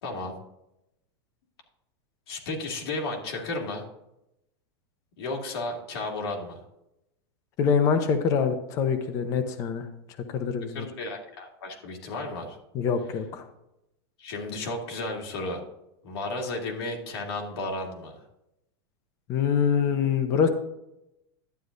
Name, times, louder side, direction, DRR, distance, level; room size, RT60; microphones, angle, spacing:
voice 1, 0.0-0.3 2.3-3.8 5.2-6.6 10.7-12.6 14.2-15.6 16.0-18.2, left 2 dB, 70° left, 0 dB, 2.3 m, -33 dB
voice 2, 7.6-9.9 10.3-10.9 12.7-13.5 19.3-20.5, left 6 dB, 25° left, 7 dB, 0.7 m, -24 dB
11.5 x 9.4 x 2.6 m, 0.85 s
supercardioid pair, 175°, 13 cm